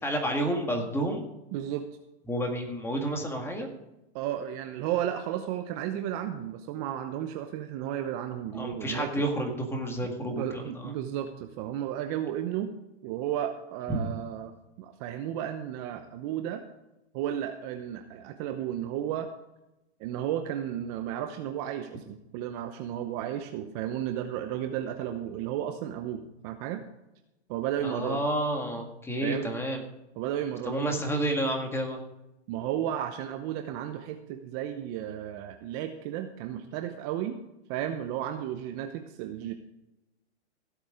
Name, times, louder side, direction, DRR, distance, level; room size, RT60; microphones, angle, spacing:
voice 1, 0.0-1.2 2.3-3.7 8.5-10.9 13.9-14.0 27.8-29.8 30.7-32.0, right 1 dB, 5° left, 3 dB, 1.8 m, -30 dB
voice 2, 1.5-1.9 4.1-9.2 10.2-12.7 13.0-14.5 14.8-16.6 17.1-19.3 20.0-26.8 27.5-28.2 29.2-29.5 30.2-31.0 32.5-37.4 37.7-39.5, right 11 dB, 30° right, 7 dB, 0.8 m, -33 dB
15.5 x 8.5 x 5.0 m, 0.92 s
hypercardioid pair, 145°, 34 cm